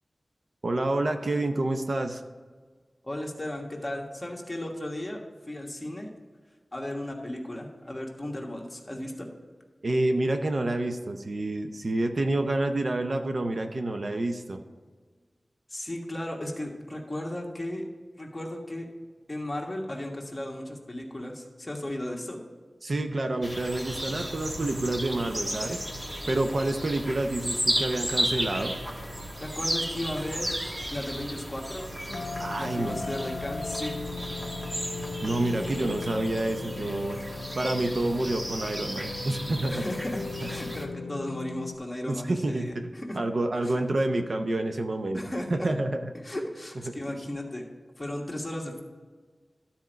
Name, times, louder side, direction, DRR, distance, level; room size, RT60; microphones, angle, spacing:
voice 1, 0.6-2.2 9.8-14.6 22.8-25.8 26.3-28.7 32.4-33.0 35.2-37.2 37.6-39.8 42.1-42.9 43.1-45.2 45.5-46.1 46.9-47.0, right 2 dB, 60° right, 6 dB, 0.6 m, -28 dB
voice 2, 3.0-5.2 5.5-6.1 6.7-9.3 15.7-17.8 18.2-18.9 19.3-22.4 29.4-30.5 30.9-31.9 32.6-34.0 39.7-43.2 43.6-43.8 45.1-45.7 46.2-47.6 48.0-48.8, left 1 dB, 20° left, 0 dB, 1.4 m, -35 dB
sound 1, 23.4-40.8, equal, 25° right, 1.3 m, -34 dB
sound 2, 32.1-41.8, left 4 dB, 85° left, 0.5 m, -37 dB
12.0 x 4.4 x 5.1 m, 1.5 s
wide cardioid pair, 75°, 0 cm